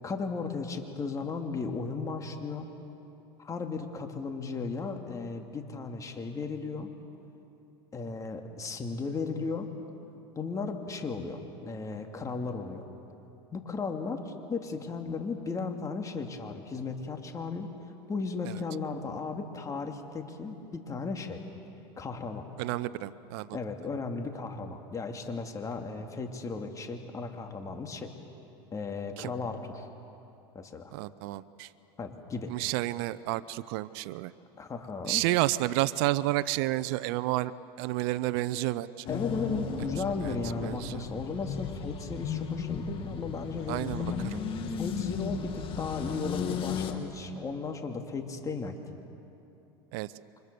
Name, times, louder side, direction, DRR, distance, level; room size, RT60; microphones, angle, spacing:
voice 1, 0.0-2.7 3.4-6.9 7.9-9.7 10.4-12.9 13.5-17.7 18.1-21.4 22.0-22.5 23.5-28.1 28.7-29.9 30.5-30.9 32.0-32.5 34.6-35.2 39.1-44.3 44.8-48.8, left 4 dB, 25° left, 4 dB, 2.5 m, -35 dB
voice 2, 22.6-23.6 29.2-29.3 30.9-31.7 32.5-34.3 35.0-37.5 37.8-39.1 40.2-40.3 40.6-41.0 43.7-44.4 49.9-50.1, right 17 dB, 70° right, 17 dB, 0.7 m, -30 dB
sound 1, 39.1-46.9, left 7 dB, 40° left, 2.4 m, -35 dB
29.5 x 25.0 x 6.9 m, 2.9 s
supercardioid pair, 110°, 13 cm